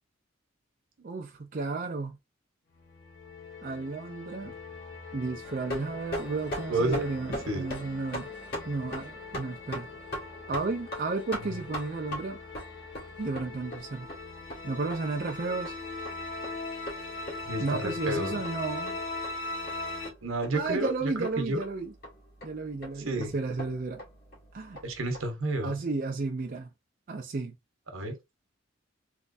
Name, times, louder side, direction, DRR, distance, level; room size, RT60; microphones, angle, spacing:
voice 1, 1.0-2.2 3.6-4.5 5.1-8.3 8.6-9.9 10.5-12.4 13.2-14.1 14.6-15.7 17.6-19.0 20.5-21.9 22.4-24.0 24.5-24.8 25.6-26.7 27.1-27.5, right 3 dB, 45° right, 0.5 m, -33 dB
sound 1, 2.7-20.1, left 3 dB, 65° left, 1.3 m, -40 dB
sound 2, 5.4-25.3, equal, 50° left, 1.8 m, -42 dB
voice 2, 6.7-7.0 7.5-7.6 11.4-11.5 17.5-18.4 20.2-21.6 23.0-23.3 24.8-25.7 27.9-28.1, right 2 dB, 80° right, 1.0 m, -30 dB
3.3 x 3.1 x 2.6 m
head